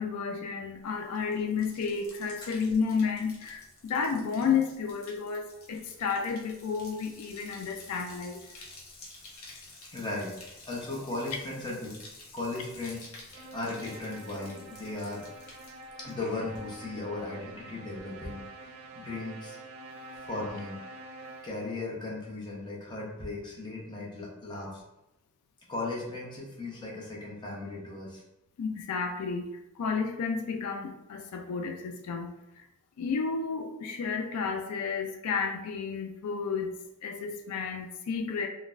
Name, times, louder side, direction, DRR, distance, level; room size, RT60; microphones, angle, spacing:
voice 1, 0.0-8.5 28.6-32.7 33.0-36.8 37.0-38.5, left 5 dB, 85° left, 4 dB, 0.3 m, -32 dB
Bathtub (filling or washing), 0.8-16.9 17.2-17.7, left 2 dB, 65° left, 0.8 m, -51 dB
voice 2, 9.9-10.3 10.6-12.0 12.3-15.3 16.0-19.6 20.1-20.8 21.4-24.8 25.7-28.2, left 2 dB, 20° left, -4 dB, 0.7 m, -37 dB
sound 1, 13.3-21.8, right 2 dB, 70° right, 0.5 m, -47 dB
3.9 x 2.1 x 2.5 m, 0.92 s
head